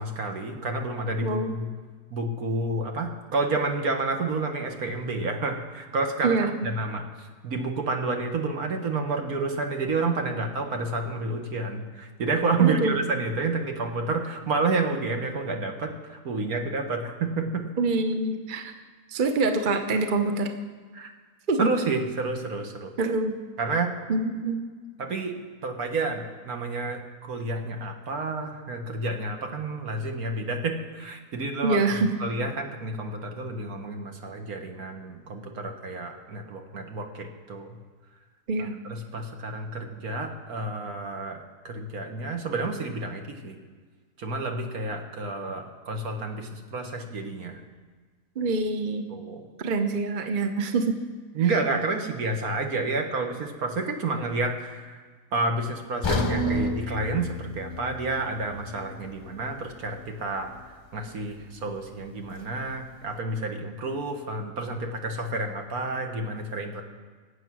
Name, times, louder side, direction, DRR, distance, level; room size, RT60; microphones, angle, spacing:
voice 1, 0.0-1.7 2.1-17.6 20.9-21.1 21.6-22.9 23.6-23.9 25.0-37.8 38.8-41.4 41.6-43.6 44.2-47.6 49.1-49.5 51.3-55.0 55.3-60.5 60.9-66.8, right 3 dB, 65° right, 4 dB, 1.8 m, -30 dB
voice 2, 1.2-1.6 6.2-6.5 12.6-12.9 17.8-18.7 19.1-20.5 21.5-21.7 23.0-23.4 24.1-24.6 31.6-32.1 38.5-38.7 48.4-49.1 49.6-51.0, right 3 dB, 40° right, 6 dB, 0.9 m, -25 dB
sound 1, 56.0-60.1 60.4-60.6 61.2-61.3, left 1 dB, 30° left, 0.5 m, -31 dB
21.5 x 8.3 x 6.2 m, 1.5 s
omnidirectional pair, 1.7 m